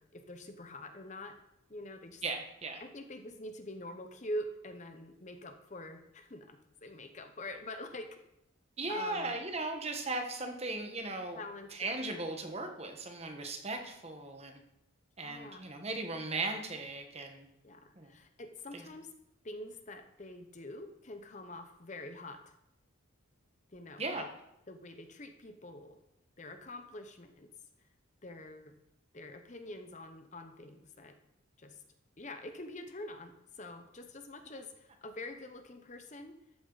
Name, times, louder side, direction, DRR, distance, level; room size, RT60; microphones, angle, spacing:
voice 1, 0.0-1.4 1.7-2.2 2.8-8.2 8.9-9.4 11.3-12.0 15.2-15.7 17.6-19.1 19.4-22.5 23.7-24.3 24.7-26.0 26.4-27.5 28.2-28.8 29.1-31.2 31.6-31.8 32.2-36.3, left 1 dB, 35° left, 8 dB, 0.8 m, -45 dB
voice 2, 2.2-2.8 8.8-11.4 11.7-14.6 15.2-17.5 17.9-18.1 18.7-18.8 24.0-24.3, right 2 dB, 30° right, 4 dB, 1.3 m, -37 dB
13.0 x 8.5 x 4.0 m, 0.82 s
head